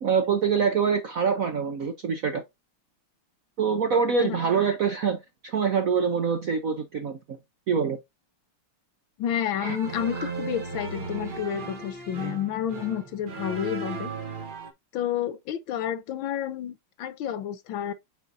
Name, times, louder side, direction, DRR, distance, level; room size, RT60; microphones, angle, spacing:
voice 1, 0.0-2.4 3.6-7.4 7.7-8.0 9.6-9.8 10.1-10.3, right 6 dB, 65° right, 0.8 m, -25 dB
voice 2, 9.2-14.1 14.9-17.9, left 10 dB, 75° left, 1.4 m, -30 dB
sound 1, 9.6-14.7, right 3 dB, 35° right, 0.9 m, -36 dB
8.4 x 4.5 x 2.6 m
omnidirectional pair, 2.4 m